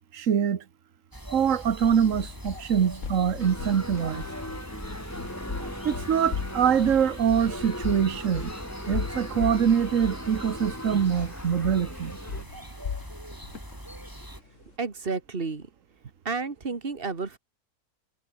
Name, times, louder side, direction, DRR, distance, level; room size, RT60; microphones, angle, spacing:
voice 1, 0.1-0.6 1.3-4.3 5.8-8.5 8.9-12.2, right 8 dB, 60° right, 1.6 m, -24 dB
sound 1, 1.1-14.4, right 1 dB, 10° right, 4.8 m, -42 dB
sound 2, 1.5-14.7, left 6 dB, 55° left, 2.0 m, -38 dB
sound 3, 3.4-12.4, left 1 dB, 10° left, 2.6 m, -39 dB
voice 2, 14.8-15.7 16.2-17.4, right 4 dB, 35° right, 2.3 m, -31 dB
omnidirectional pair, 1.6 m